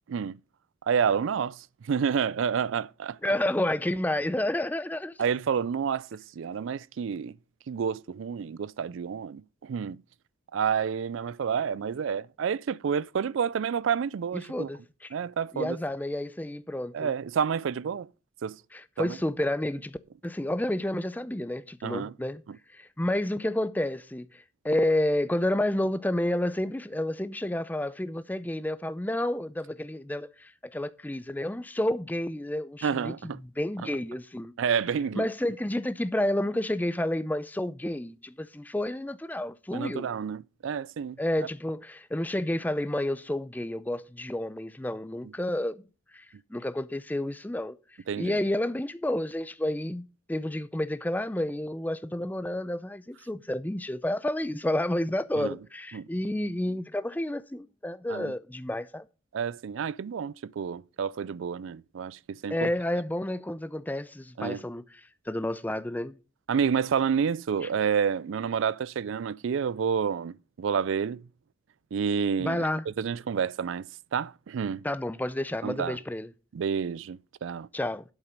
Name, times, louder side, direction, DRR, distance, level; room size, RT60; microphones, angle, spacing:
voice 1, 0.1-0.4 0.9-3.2 5.2-7.3 7.7-10.0 10.5-14.7 15.1-15.8 16.9-18.1 18.4-18.6 19.0-19.2 21.8-22.1 22.5-22.6 32.8-33.4 34.6-35.3 39.7-41.2 45.2-45.3 48.1-48.4 55.4-55.6 55.9-56.1 58.1-58.3 59.3-62.7 64.4-64.6 66.5-71.3 71.9-73.8 74.1-74.9 75.6-76.0 76.5-77.7, right 7 dB, 75° right, 0.4 m, -29 dB
voice 2, 3.2-5.2 14.3-15.1 15.5-17.1 18.7-20.0 20.2-22.4 22.7-34.5 35.1-40.1 41.2-45.8 46.1-46.2 46.5-47.8 48.2-59.0 62.5-64.8 65.3-66.2 72.4-72.8 74.8-76.3 77.7-78.0, left 1 dB, 10° left, 0.4 m, -30 dB
8.2 x 7.2 x 5.2 m
head